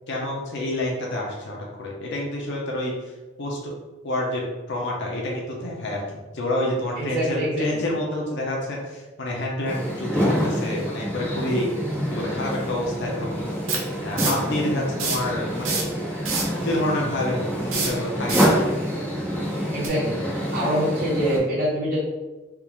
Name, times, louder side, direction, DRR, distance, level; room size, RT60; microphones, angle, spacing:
voice 1, 0.1-2.9 3.4-3.7 4.0-4.4 4.7-6.0 6.3-11.7 12.1-13.5 14.0-15.9 16.6-17.4 17.7-18.7, left 1 dB, 55° left, -2 dB, 0.6 m, -28 dB
voice 2, 7.0-7.8 19.7-20.2 20.5-22.0, equal, 45° right, -9 dB, 0.9 m, -25 dB
sound 1, 9.7-21.4, equal, 10° right, 1.1 m, -27 dB
sound 2, 12.2-12.3 13.7-14.5 14.9-15.3 15.6-16.6 17.6-18.6 19.8-19.9, right 4 dB, 75° right, 0.7 m, -26 dB
3.5 x 2.5 x 3.0 m, 1.2 s
head